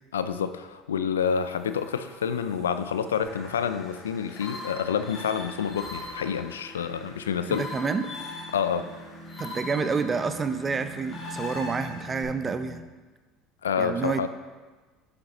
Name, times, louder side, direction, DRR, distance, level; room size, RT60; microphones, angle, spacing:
voice 1, 0.1-7.7 8.5-8.9 13.6-14.3, left 7 dB, 85° left, 11 dB, 0.4 m, -28 dB
sound 1, 1.2-12.8, equal, 45° right, 2.5 m, -46 dB
sound 2, 3.2-12.2, left 3 dB, 45° left, 2.7 m, -41 dB
voice 2, 7.5-8.1 9.4-12.8 13.8-14.3, right 5 dB, 25° right, 10 dB, 0.6 m, -28 dB
8.9 x 7.5 x 3.0 m, 1.3 s
hypercardioid pair, 70°, 0 cm